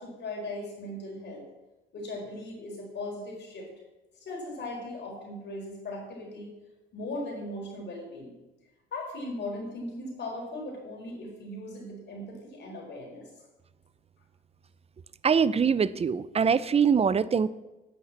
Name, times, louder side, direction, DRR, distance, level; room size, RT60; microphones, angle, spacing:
voice 1, 0.0-1.4 1.9-3.7 4.2-6.5 6.9-8.3 8.9-13.2, left 1 dB, 60° left, -1 dB, 4.7 m, -38 dB
voice 2, 15.2-17.5, right 6 dB, 30° right, 17 dB, 0.6 m, -23 dB
9.2 x 8.3 x 7.4 m, 1.0 s
cardioid pair, 90°, 20 cm